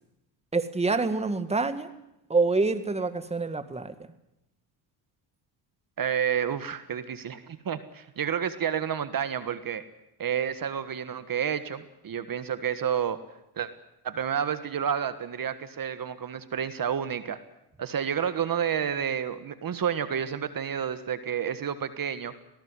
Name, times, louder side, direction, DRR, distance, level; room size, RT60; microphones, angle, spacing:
voice 1, 0.5-1.9 2.3-3.9, right 3 dB, 15° right, 11 dB, 1.7 m, -26 dB
voice 2, 6.0-9.8 10.2-13.2 13.5-13.7 14.0-17.4 17.8-22.3, right 8 dB, 45° right, 12 dB, 1.6 m, -30 dB
20.0 x 18.0 x 9.7 m, 0.86 s
supercardioid pair, 85°, 50 cm